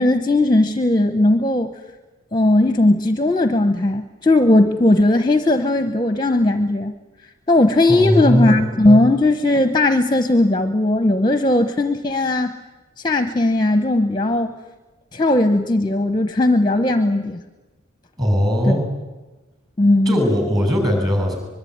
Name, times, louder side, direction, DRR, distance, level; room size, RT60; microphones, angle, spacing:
voice 1, 0.0-1.7 2.3-6.9 7.5-12.5 13.0-14.5 15.1-17.4 18.7-18.8 19.8-20.2, left 2 dB, 20° left, 9 dB, 0.9 m, -17 dB
voice 2, 7.9-8.6 18.2-18.8 20.0-21.4, equal, 20° right, 4 dB, 6.6 m, -19 dB
24.5 x 22.0 x 9.5 m, 1.2 s
head